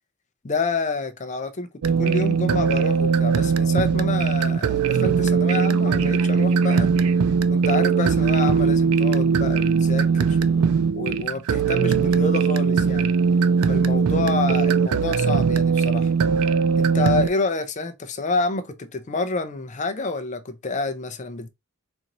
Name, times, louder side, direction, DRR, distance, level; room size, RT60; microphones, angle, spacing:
voice 1, 0.4-1.7 2.0-6.9 7.5-13.1 13.7-16.1 16.8-21.5, left 3 dB, 35° left, 0.5 m, -28 dB
sound 1, 1.8-17.3, right 5 dB, 85° right, 0.4 m, -20 dB
4.2 x 2.6 x 2.9 m
head